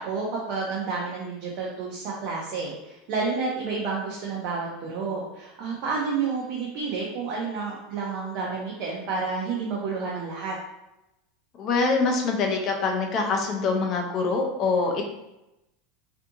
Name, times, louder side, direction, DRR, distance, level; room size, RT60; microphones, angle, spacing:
voice 1, 0.0-10.6, right 4 dB, 45° right, -4 dB, 0.5 m, -30 dB
voice 2, 11.6-15.0, left 4 dB, 30° left, 2 dB, 0.4 m, -24 dB
2.6 x 2.5 x 2.5 m, 0.92 s
supercardioid pair, 170°, 0 cm